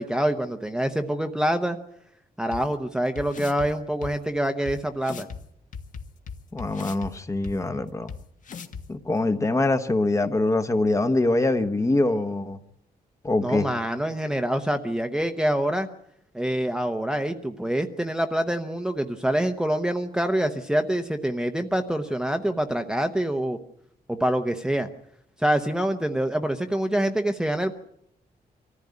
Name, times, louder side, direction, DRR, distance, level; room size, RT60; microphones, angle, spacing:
voice 1, 0.0-1.8 2.4-5.3 13.4-15.9 16.3-23.6 24.1-24.9 25.4-27.7, right 1 dB, 5° right, 0.8 m, -26 dB
sound 1, 2.5-2.6 3.2-3.7 4.0-4.1 4.7-4.8 5.0-5.4 5.7-7.1 7.4-7.5 8.1-8.2 8.5-8.8, left 6 dB, 55° left, 1.5 m, -37 dB
voice 2, 6.5-8.1 8.9-12.6 13.2-13.7, left 2 dB, 20° left, 1.0 m, -24 dB
25.0 x 14.5 x 9.5 m
wide cardioid pair, 175°, 16 cm